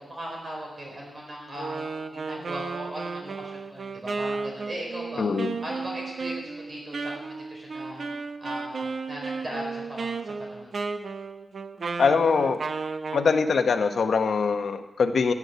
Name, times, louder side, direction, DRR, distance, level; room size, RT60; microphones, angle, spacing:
voice 1, 0.0-5.2 5.6-8.0 8.4-10.8, right 1 dB, 35° right, -2 dB, 4.4 m, -38 dB
Wind instrument woodwind instrument, 1.6-13.3, right 4 dB, 55° right, 0.8 m, -34 dB
voice 2, 5.2-5.6 12.0-12.6 13.1-15.3, left 5 dB, 80° left, 7 dB, 0.9 m, -23 dB
14.5 x 7.2 x 9.4 m, 1.0 s
wide cardioid pair, 165°, 0 cm